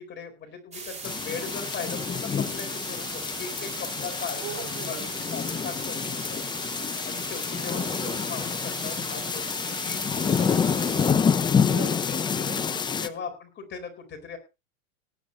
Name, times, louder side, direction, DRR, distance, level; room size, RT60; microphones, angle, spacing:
voice 1, 0.1-6.4 7.0-11.8 13.0-14.4, left 6 dB, 25° left, 4 dB, 4.4 m, -39 dB
sound 1, 0.7-11.1, right 4 dB, 15° right, 4.1 m, -38 dB
sound 2, 1.0-13.1, left 6 dB, 10° left, 0.5 m, -28 dB
voice 2, 4.4-5.2 7.7-8.2 11.7-13.3, right 10 dB, 40° right, 9 dB, 4.6 m, -41 dB
18.5 x 11.5 x 2.7 m, 0.27 s
hypercardioid pair, 125°, 40 cm